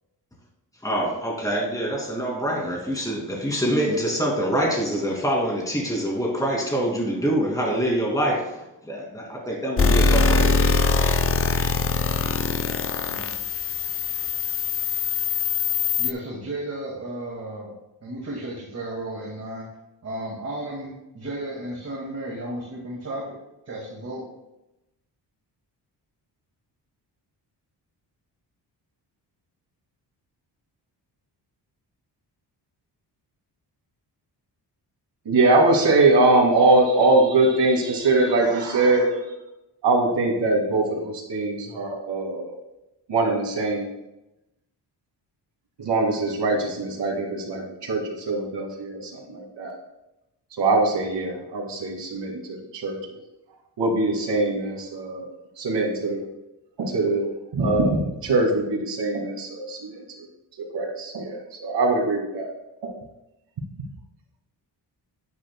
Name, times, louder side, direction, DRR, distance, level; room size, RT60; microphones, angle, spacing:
voice 1, 0.8-10.7, right 1 dB, 10° left, -1 dB, 2.3 m, -25 dB
sound 1, 9.8-16.1, left 4 dB, 30° left, 0.6 m, -22 dB
voice 2, 13.0-13.4 16.0-17.8 18.0-19.7 20.0-23.3 23.7-24.2, right 1 dB, 35° right, -3 dB, 2.1 m, -34 dB
voice 3, 35.3-39.1 39.8-42.5 43.1-43.9 45.8-49.7 50.6-53.0 53.8-55.3 55.6-56.2 56.8-60.3 60.7-62.5 62.8-62.9 63.8-63.9, right 2 dB, 80° right, 1 dB, 2.2 m, -22 dB
9.6 x 9.5 x 2.2 m, 0.92 s
cardioid pair, 115°, 42 cm